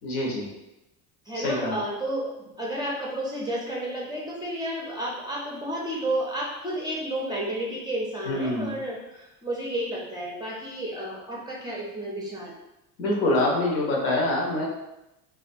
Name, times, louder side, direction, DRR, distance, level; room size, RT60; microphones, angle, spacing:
voice 1, 0.0-0.5 1.3-1.8 8.2-8.8 13.0-14.7, left 1 dB, 70° left, -2 dB, 0.8 m, -25 dB
voice 2, 1.3-12.5, right 1 dB, 10° right, -5 dB, 0.5 m, -31 dB
2.2 x 2.2 x 2.5 m, 0.93 s
hypercardioid pair, 65°, 46 cm